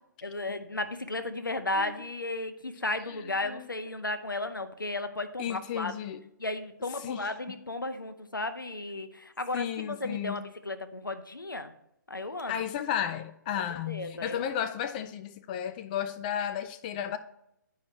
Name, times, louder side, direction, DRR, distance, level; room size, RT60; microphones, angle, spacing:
voice 1, 0.2-5.9 6.4-11.7 12.1-12.5 13.5-14.4, left 2 dB, 85° left, 0.8 m, -34 dB
voice 2, 3.1-3.7 5.4-6.2 7.0-7.3 9.5-10.4 12.5-17.2, left 9 dB, 25° left, 0.3 m, -33 dB
10.5 x 4.8 x 3.1 m
figure-of-eight pair, 135°, 11 cm